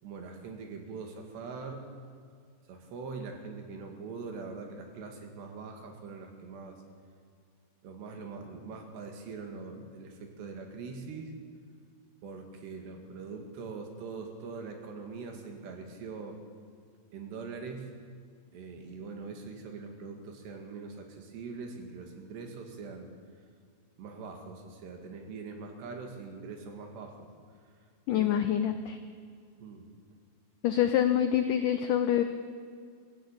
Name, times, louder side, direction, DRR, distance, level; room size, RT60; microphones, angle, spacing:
voice 1, 0.0-1.8 2.7-6.8 7.8-11.3 12.2-16.4 17.1-17.9 18.5-23.1 24.0-27.2 28.1-28.5 29.6-29.9, right 4 dB, 80° right, 3 dB, 4.3 m, -42 dB
voice 2, 28.1-29.0 30.6-32.2, left 10 dB, 90° left, 8 dB, 1.8 m, -26 dB
22.0 x 14.0 x 8.8 m, 2.1 s
omnidirectional pair, 4.8 m